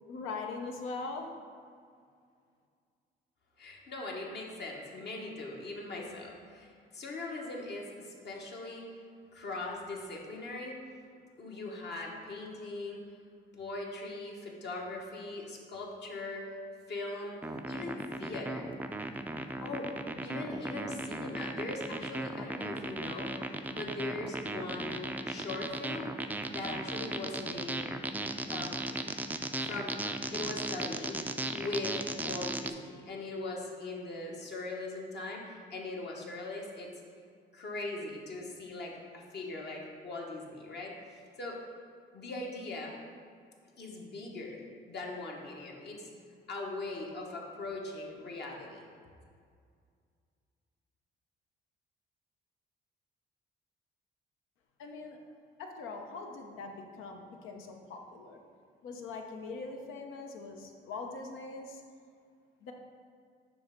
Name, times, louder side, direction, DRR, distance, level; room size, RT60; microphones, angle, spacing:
voice 1, 0.1-1.3 54.8-55.2 55.6-58.4 58.8-61.8 62.6-62.7, left 3 dB, 90° left, 3 dB, 0.8 m, -41 dB
voice 2, 3.6-8.9 9.3-10.8 11.4-13.0 13.5-16.5 16.9-17.4 17.7-18.7 19.6-19.9 20.2-23.3 23.7-26.1 26.5-27.8 28.5-28.8 29.6-30.0 30.3-31.2 31.5-36.9 37.5-41.6 42.1-42.9 43.8-46.1 46.5-48.8, left 2 dB, 60° left, -1 dB, 1.3 m, -40 dB
sound 1, 17.4-32.7, right 2 dB, 10° right, 0.3 m, -36 dB
6.9 x 3.3 x 5.2 m, 2.2 s
cardioid pair, 90°, 20 cm